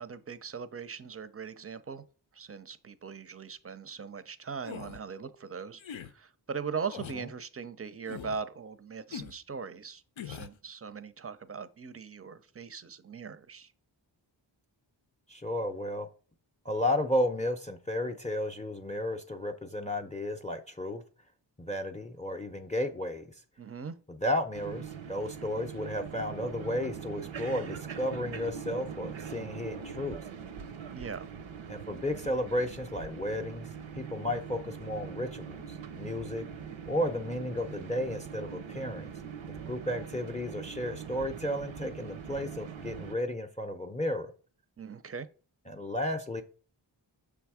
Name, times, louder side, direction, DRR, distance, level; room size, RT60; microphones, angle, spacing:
voice 1, 0.0-2.0 2.3-13.7 23.6-24.0 30.9-31.3 44.8-45.3, right 6 dB, 30° right, 0.5 m, -40 dB
sound 1, 4.6-5.0 5.8-6.1 6.9-7.2 8.1-8.4 9.1-9.4 10.2-10.6, left 8 dB, 80° left, 0.6 m, -42 dB
voice 2, 15.3-16.1 16.6-21.0 21.6-23.3 24.1-30.2 31.7-33.7 33.9-36.5 36.9-39.1 39.7-44.3 45.7-46.4, left 1 dB, 15° left, 0.6 m, -33 dB
sound 2, 24.5-43.2, right 7 dB, 80° right, 0.6 m, -42 dB
6.1 x 3.5 x 4.8 m
wide cardioid pair, 45°, 46 cm